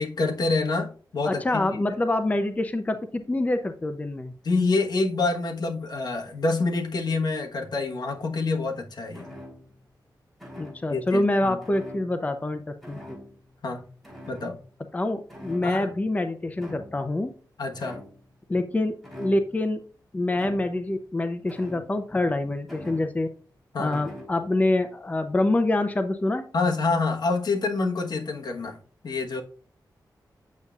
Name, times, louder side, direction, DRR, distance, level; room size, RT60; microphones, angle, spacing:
voice 1, 0.0-1.6 4.4-9.3 10.9-11.6 13.6-13.8 14.3-14.6 15.6-15.9 17.6-18.0 23.7-24.0 26.5-28.8 29.0-29.4, left 3 dB, 65° left, 2 dB, 1.2 m, -27 dB
voice 2, 1.2-4.3 10.6-12.6 12.9-13.0 14.9-17.3 18.5-19.8 20.1-23.3 23.8-26.4, left 2 dB, 20° left, 7 dB, 0.6 m, -26 dB
sound 1, 9.1-9.8 10.4-11.0 11.6-12.5 12.8-13.5 14.0-15.0 15.3-16.1 16.6-17.2 17.8-18.3 19.0-19.7 20.3-20.9 21.5-22.2 22.7-23.4 23.9-24.4, left 1 dB, ahead, 3.4 m, -43 dB
8.3 x 6.7 x 2.4 m, 0.42 s
wide cardioid pair, 125°, 8 cm